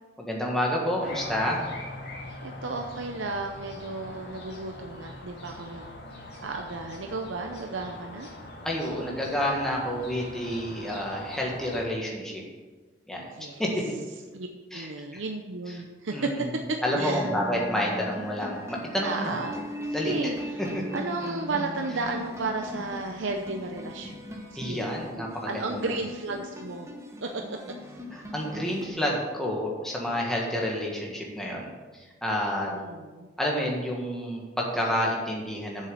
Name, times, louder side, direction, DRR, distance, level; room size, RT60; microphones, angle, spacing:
voice 1, 0.2-1.6 8.6-12.4 13.1-13.2 13.6-13.8 14.7-15.2 15.7-15.8 16.1-16.6 16.8-19.3 19.9-20.3 20.6-20.8 24.5-26.0 28.1-32.7 33.4-35.9, equal, ahead, -3 dB, 1.6 m, -29 dB
sound 1, 1.0-11.9, left 1 dB, 55° left, 2.1 m, -42 dB
voice 2, 2.4-5.9 6.2-8.3 13.3-13.7 14.3-14.5 14.7-17.3 19.0-19.6 19.9-20.6 20.9-24.9 25.5-26.9 27.2-27.6 32.7-33.3, right 3 dB, 80° right, 3 dB, 0.7 m, -33 dB
sound 2, 16.9-28.9, left 1 dB, 15° right, 1.1 m, -38 dB
7.5 x 6.5 x 6.9 m, 1.3 s
head